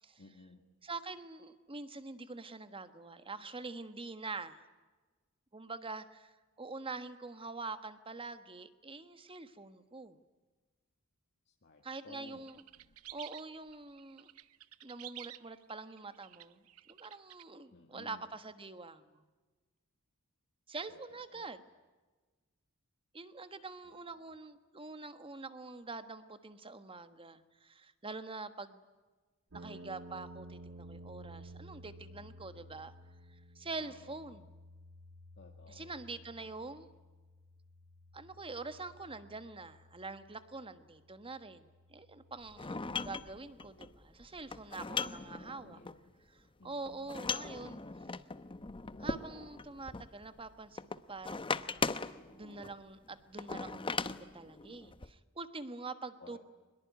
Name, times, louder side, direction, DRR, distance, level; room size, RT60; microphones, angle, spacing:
voice 1, 0.2-0.6 11.5-12.4 12.8-13.0 17.7-18.3 20.9-21.5 23.9-24.3 33.8-34.2 35.4-35.9 45.0-46.1 46.6-47.1 56.2-56.4, left 3 dB, 55° left, 2 dB, 2.0 m, -57 dB
voice 2, 0.8-4.7 5.5-10.2 11.8-12.6 13.1-14.3 14.8-19.2 20.7-21.6 23.1-28.8 29.5-32.9 33.3-34.5 35.7-36.9 38.1-45.8 46.3-47.8 49.0-51.6 52.3-56.4, right 3 dB, 25° right, 10 dB, 1.4 m, -45 dB
sound 1, 12.5-17.4, right 14 dB, 75° right, 0.8 m, -51 dB
sound 2, 29.5-43.6, right 1 dB, 60° right, 1.3 m, -54 dB
sound 3, 42.5-46.0 46.9-50.5 50.8-52.7 53.4-55.1, left 4 dB, 25° left, 0.8 m, -39 dB
23.5 x 22.0 x 9.4 m, 1.3 s
head